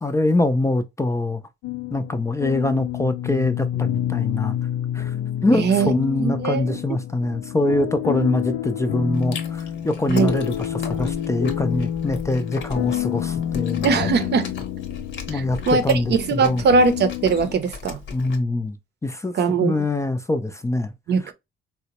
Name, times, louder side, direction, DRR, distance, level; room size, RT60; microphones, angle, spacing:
voice 1, 0.0-1.4 1.9-4.6 4.9-5.1 5.4-14.1 15.3-16.6 18.1-18.8 19.0-19.3 19.6-20.9, left 2 dB, 15° left, 0.4 m, -24 dB
sound 1, 1.6-17.5, left 11 dB, 90° left, 0.4 m, -28 dB
voice 2, 5.5-5.9 6.2-6.8 10.1-10.3 13.8-14.5 15.3-15.8 16.1-18.0 19.3-19.7 21.1-21.3, right 5 dB, 60° right, 0.6 m, -20 dB
Chewing mastication, 9.1-18.4, left 5 dB, 70° left, 0.9 m, -38 dB
3.8 x 2.1 x 2.8 m
cardioid pair, 90°, 20 cm